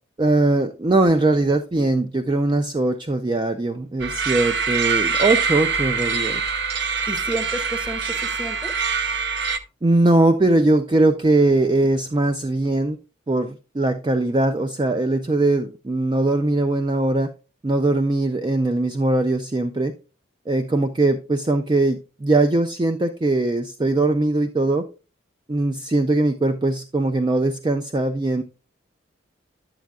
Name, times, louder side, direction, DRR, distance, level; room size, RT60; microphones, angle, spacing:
voice 1, 0.2-6.4 9.8-13.0 13.3-17.3 17.6-19.9 20.5-24.9 25.5-28.4, right 2 dB, 25° right, 8 dB, 0.3 m, -20 dB
sound 1, 4.0-9.6, right 5 dB, 60° right, 0.7 m, -24 dB
voice 2, 6.6-8.7, right 1 dB, 5° right, 7 dB, 0.8 m, -32 dB
10.5 x 7.3 x 2.3 m, 0.32 s
head